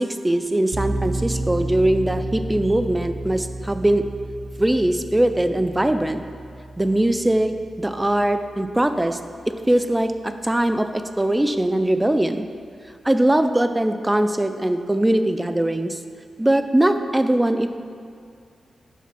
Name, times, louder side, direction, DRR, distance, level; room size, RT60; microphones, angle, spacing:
voice 1, 0.0-4.0 4.6-6.2 6.8-7.5 7.8-9.2 9.7-12.5 13.0-16.0 16.4-17.7, right 1 dB, 10° right, 9 dB, 0.3 m, -21 dB
sound 1, 0.7-9.6, right 2 dB, 80° right, 1.0 m, -32 dB
8.2 x 4.1 x 6.1 m, 2.4 s
wide cardioid pair, 170°, 0 cm